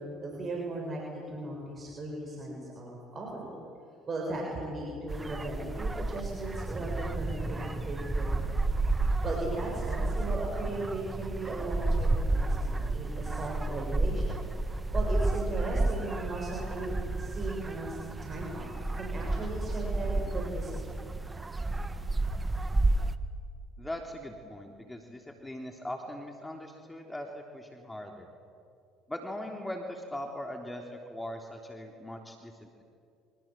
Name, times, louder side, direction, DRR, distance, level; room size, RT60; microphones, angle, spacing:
voice 1, 0.0-3.6 4.1-8.5 9.2-14.4 14.9-21.0, right 2 dB, 35° right, -1 dB, 7.0 m, -37 dB
sound 1, 5.1-23.2, right 2 dB, 20° right, 1.5 m, -31 dB
voice 2, 23.8-27.3 27.5-28.3 29.1-32.8, left 1 dB, 10° left, 2 dB, 3.4 m, -40 dB
28.0 x 25.5 x 7.7 m, 2.4 s
hypercardioid pair, 65°, 0 cm